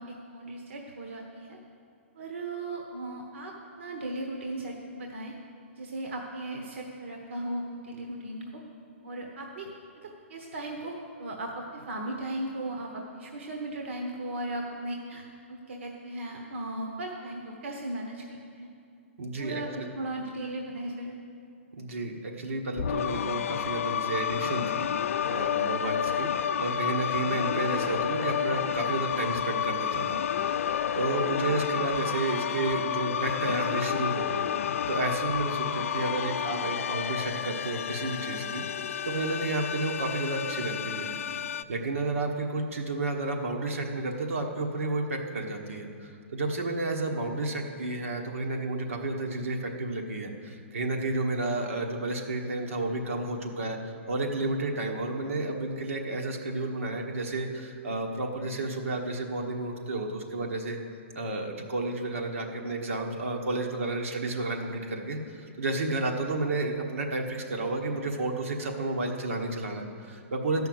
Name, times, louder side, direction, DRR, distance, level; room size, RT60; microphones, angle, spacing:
voice 1, 0.0-1.6 2.1-5.3 5.7-8.6 9.0-9.7 10.0-18.7 19.4-21.2, right 1 dB, 60° right, 1 dB, 1.1 m, -37 dB
voice 2, 19.2-19.6 21.7-24.9 25.2-26.3 26.6-38.6 39.0-41.4 41.7-60.8 61.1-70.7, right 2 dB, 80° right, 2 dB, 1.4 m, -31 dB
sound 1, 22.8-41.6, left 9 dB, 85° left, 0.4 m, -30 dB
12.0 x 5.7 x 7.8 m, 2.5 s
hypercardioid pair, 170°, 7 cm